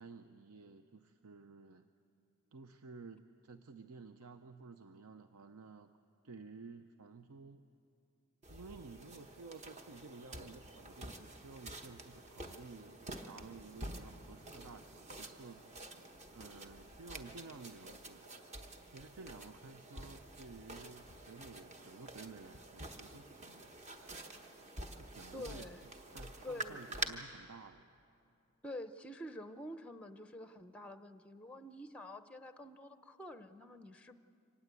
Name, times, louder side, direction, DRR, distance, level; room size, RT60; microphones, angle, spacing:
voice 1, 0.0-1.9 2.5-5.9 6.2-7.6 8.4-15.6 16.3-18.3 18.8-23.7 25.0-25.7 26.1-27.8, right 4 dB, 70° right, 8 dB, 0.7 m, -53 dB
sound 1, 8.4-27.1, right 2 dB, 30° right, 1.1 m, -48 dB
voice 2, 25.3-25.8 26.4-26.8 28.6-34.2, left 1 dB, 5° left, 9 dB, 0.6 m, -48 dB
24.5 x 19.0 x 8.2 m, 2.6 s
head